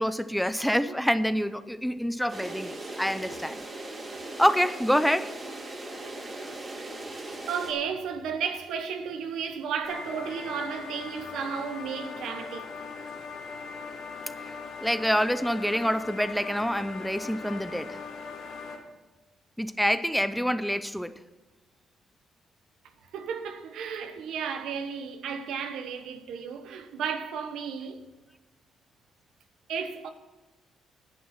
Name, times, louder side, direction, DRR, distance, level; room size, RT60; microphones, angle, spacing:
voice 1, 0.0-3.6 4.4-5.3 14.8-18.0 19.6-21.2, equal, ahead, 0.5 m, -26 dB
sound 1, 2.3-7.7, right 2 dB, 35° right, 2.3 m, -39 dB
voice 2, 7.5-12.8 23.1-28.0 29.7-30.1, right 7 dB, 80° right, 1.1 m, -33 dB
sound 2, 9.8-18.8, left 5 dB, 90° left, 2.5 m, -40 dB
11.0 x 9.4 x 5.9 m
cardioid pair, 90°, 0 cm